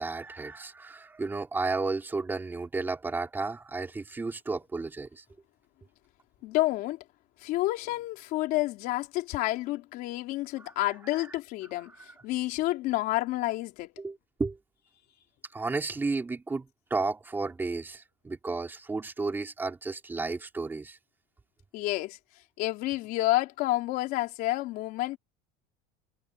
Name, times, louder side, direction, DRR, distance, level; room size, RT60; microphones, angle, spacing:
voice 1, 0.0-5.2 11.1-11.3 14.0-14.6 15.5-21.0, right 3 dB, 10° right, 3.2 m, -33 dB
voice 2, 6.4-7.0 7.4-13.9 21.7-22.2 22.6-25.2, left 17 dB, 45° left, 3.4 m, -29 dB
cardioid pair, 175°, 20 cm